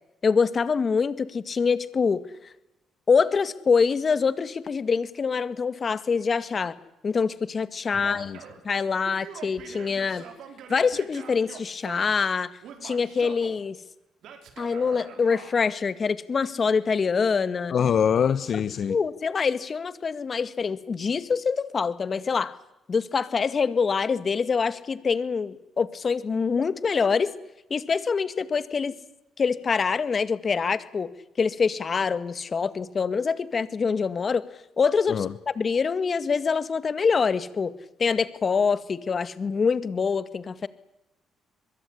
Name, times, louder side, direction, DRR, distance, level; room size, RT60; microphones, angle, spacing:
voice 1, 0.2-2.2 3.1-6.7 7.0-8.3 8.6-10.2 10.7-12.5 12.8-13.8 14.6-17.7 18.9-22.6 22.9-27.3 27.7-28.9 29.4-31.1 31.4-34.4 34.8-37.7 38.0-40.7, left 5 dB, 40° left, 14 dB, 2.0 m, -25 dB
Male speech man speaking / Yell, 8.0-8.6 9.0-12.3 12.6-13.6 14.2-15.5, right 8 dB, 75° right, 5.4 m, -44 dB
voice 2, 17.7-19.0 35.1-35.3, left 8 dB, 55° left, 13 dB, 1.3 m, -24 dB
22.5 x 22.5 x 10.0 m, 0.92 s
cardioid pair, 90°, 0 cm